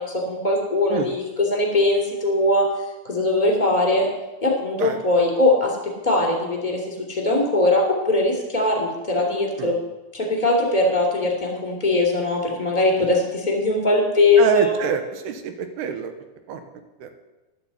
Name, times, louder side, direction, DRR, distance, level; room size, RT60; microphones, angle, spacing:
voice 1, 0.0-2.7 3.0-4.1 4.4-5.7 6.0-9.7 10.1-14.8, left 2 dB, 15° left, -2 dB, 2.6 m, -21 dB
voice 2, 14.4-16.1 16.5-16.6 17.0-17.1, right 7 dB, 85° right, 7 dB, 3.1 m, -26 dB
14.0 x 12.0 x 4.3 m, 1.1 s
omnidirectional pair, 4.6 m